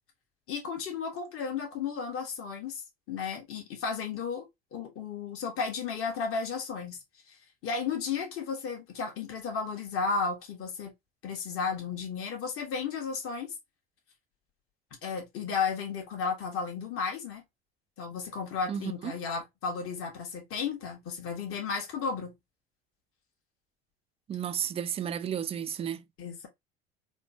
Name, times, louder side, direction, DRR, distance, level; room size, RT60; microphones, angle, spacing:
voice 1, 0.5-2.8 3.1-7.4 7.6-10.9 11.2-13.5 15.0-17.4 18.0-22.4 26.2-26.5, left 5 dB, 45° left, 1.4 m, -34 dB
voice 2, 18.7-19.1 24.3-26.0, right 9 dB, 20° right, 0.3 m, -33 dB
4.2 x 2.2 x 2.8 m
hypercardioid pair, 70°, 31 cm